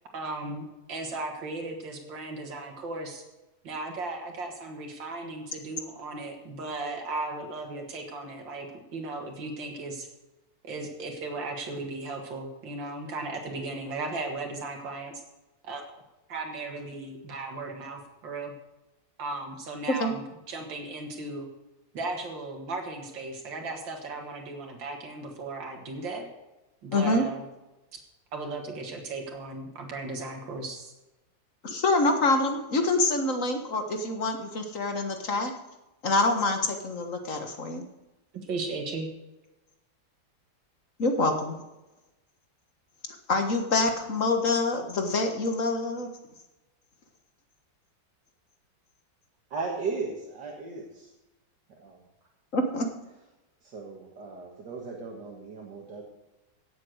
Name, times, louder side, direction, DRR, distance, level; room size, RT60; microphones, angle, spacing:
voice 1, 0.1-3.2 3.6-8.7 8.9-10.1 10.6-15.1 15.6-16.0 16.3-18.6 19.2-21.5 21.9-26.3 26.8-27.4 27.9-28.0 28.3-30.9 38.3-39.1, right 3 dB, 85° right, 1 dB, 2.5 m, -36 dB
voice 2, 26.9-27.2 31.6-35.5 36.0-37.8 41.0-41.6 43.3-46.1 52.5-52.9, left 2 dB, 45° left, 5 dB, 1.8 m, -26 dB
voice 3, 49.5-51.1 51.7-52.0 53.6-56.0, right 4 dB, 70° right, -2 dB, 2.4 m, -36 dB
17.0 x 7.8 x 6.4 m, 1.0 s
omnidirectional pair, 2.0 m